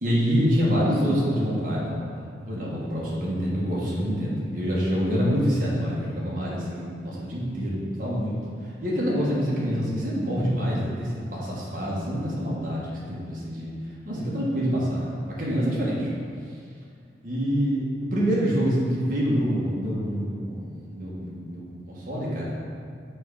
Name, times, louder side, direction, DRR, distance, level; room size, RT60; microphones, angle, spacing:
voice 1, 0.0-2.0 2.4-8.3 8.8-13.7 14.1-15.1 15.4-16.1 17.2-22.5, equal, 50° right, -6 dB, 1.3 m, -26 dB
6.2 x 3.3 x 4.8 m, 2.3 s
head